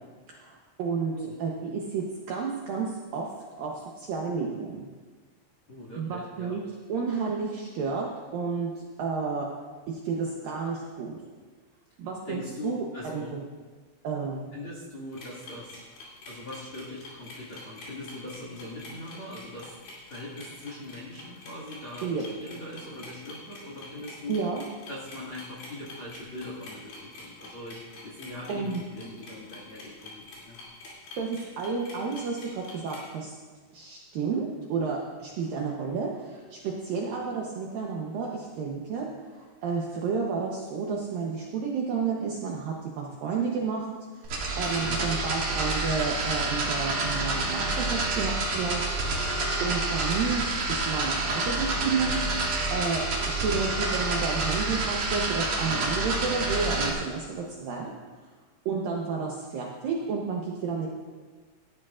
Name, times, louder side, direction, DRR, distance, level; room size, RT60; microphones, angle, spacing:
voice 1, 0.3-1.1 1.4-3.3 3.6-4.9 6.0-6.6 6.9-9.5 9.9-11.2 12.0-13.4 14.0-14.5 22.0-22.2 24.3-24.6 28.5-28.8 31.2-33.3 33.7-39.1 39.4-48.9 49.2-57.9 58.7-60.9, right 5 dB, 75° right, -2 dB, 2.2 m, -31 dB
voice 2, 5.7-6.6 12.3-13.4 14.5-15.8 16.3-19.7 20.1-22.1 22.4-24.4 24.9-30.6 44.8-45.0 55.6-55.9, left 1 dB, 40° left, -4 dB, 2.0 m, -41 dB
sound 1, 15.1-33.0, left 3 dB, 70° left, 5.2 m, -46 dB
sound 2, 44.2-56.9, right 2 dB, 45° right, 2.6 m, -28 dB
18.5 x 12.5 x 2.5 m, 1.4 s
omnidirectional pair, 5.2 m